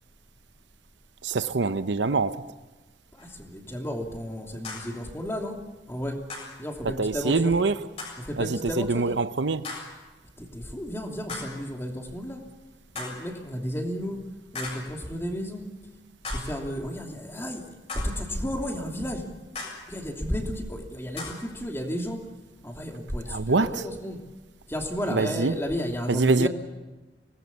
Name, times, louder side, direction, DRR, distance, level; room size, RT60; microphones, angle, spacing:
voice 1, 1.2-2.4 6.8-7.8 8.4-9.7 23.3-23.8 25.1-25.6 26.1-26.5, right 3 dB, 75° right, 0.8 m, -24 dB
voice 2, 3.1-5.6 5.9-6.2 6.6-7.5 8.2-9.2 10.4-12.4 12.9-14.2 14.5-15.7 16.3-17.7 18.0-19.2 19.9-22.2 22.6-24.2 24.7-26.5, equal, 15° left, 2.9 m, -32 dB
sound 1, 3.2-3.3 4.6-5.0 6.3-6.6 8.0-8.3 9.6-10.0 11.3-11.7 13.0-13.3 14.5-15.0 16.2-16.6 17.9-18.3 19.6-19.9 21.2-21.5, left 3 dB, 35° left, 7.0 m, -38 dB
25.0 x 19.0 x 7.2 m
head